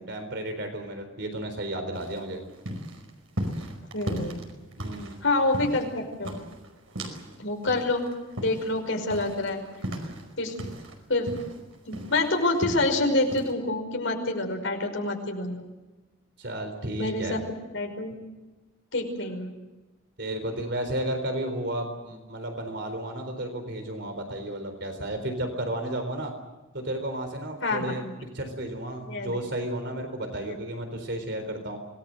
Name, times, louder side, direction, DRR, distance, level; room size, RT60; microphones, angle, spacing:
voice 1, 0.1-2.4 4.8-5.2 16.4-17.4 20.2-26.3 26.7-28.0 28.3-31.8, right 1 dB, 55° right, 6 dB, 4.1 m, -33 dB
sound 1, 1.9-7.4 7.6-10.9 11.3-13.0 13.3-13.5, equal, 85° right, 5.1 m, -36 dB
voice 2, 3.9-4.4 5.2-6.3 7.4-8.1 8.4-9.6 10.4-10.5 11.1-11.3 11.9-15.6 17.0-17.4 17.7-18.1 18.9-19.5 27.6-28.1 29.1-29.3, left 2 dB, 70° left, 3 dB, 5.5 m, -27 dB
26.0 x 19.5 x 7.8 m, 1.1 s
head